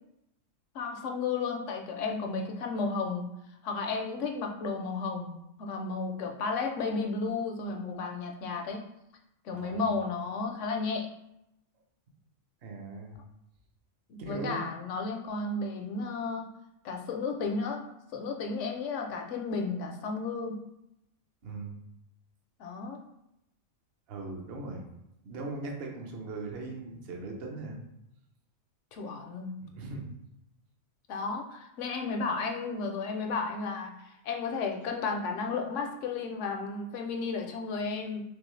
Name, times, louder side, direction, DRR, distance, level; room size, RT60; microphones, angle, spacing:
voice 1, 0.7-3.3 3.6-8.8 9.4-11.1 14.1-16.5 16.8-17.8 18.1-20.6 22.6-23.0 28.9-29.6 31.1-38.2, left 4 dB, 70° left, 2 dB, 0.8 m, -33 dB
voice 2, 9.5-9.9 12.6-13.2 14.2-14.7 21.4-21.7 24.1-24.8 25.2-27.8 29.6-30.1, right 3 dB, 50° right, 1 dB, 0.8 m, -39 dB
3.7 x 3.0 x 3.1 m, 0.84 s
omnidirectional pair, 1.5 m